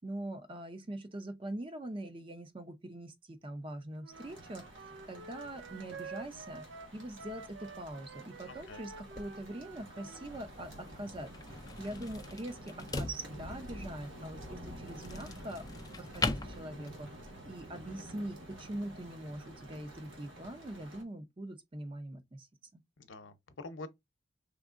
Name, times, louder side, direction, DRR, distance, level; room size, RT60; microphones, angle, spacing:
voice 1, 0.0-4.6 5.1-6.6 6.9-11.3 11.8-15.7 16.0-17.1 17.4-22.5 22.7-22.8, right 1 dB, 30° right, 0.6 m, -43 dB
Wind instrument woodwind instrument, 4.0-10.3, right 5 dB, 70° right, 0.5 m, -49 dB
sound 1, 4.1-21.0, right 1 dB, 85° right, 1.3 m, -50 dB
voice 2, 8.5-8.8 23.0-23.9, left 3 dB, 85° left, 0.8 m, -46 dB
sound 2, 8.6-17.3, left 3 dB, 20° left, 0.4 m, -41 dB
5.0 x 3.5 x 2.5 m
head